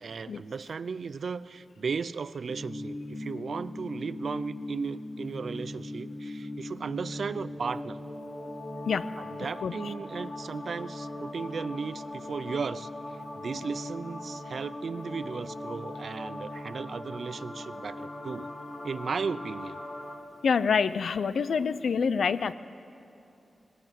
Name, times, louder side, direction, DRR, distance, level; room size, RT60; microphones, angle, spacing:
voice 1, 0.0-8.0 9.2-12.9 13.3-18.5 18.8-19.8, right 5 dB, 55° right, 16 dB, 0.5 m, -35 dB
sound 1, 2.5-20.2, left 1 dB, 20° left, 2.3 m, -39 dB
voice 2, 9.6-9.9 20.4-22.5, left 6 dB, 70° left, 14 dB, 0.6 m, -26 dB
20.5 x 19.5 x 9.2 m, 2.7 s
wide cardioid pair, 175°, 0 cm